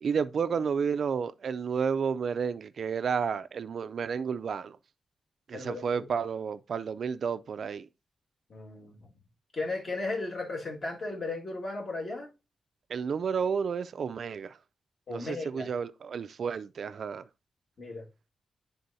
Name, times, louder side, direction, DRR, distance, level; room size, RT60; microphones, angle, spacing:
voice 1, 0.0-4.8 5.5-7.9 12.9-14.6 15.1-17.2, right 6 dB, 55° right, 0.3 m, -31 dB
voice 2, 5.5-5.9 8.5-9.0 9.5-12.3 15.1-15.7 17.8-18.0, left 3 dB, 40° left, 1.9 m, -35 dB
11.0 x 3.8 x 2.7 m
wide cardioid pair, 155°, 0 cm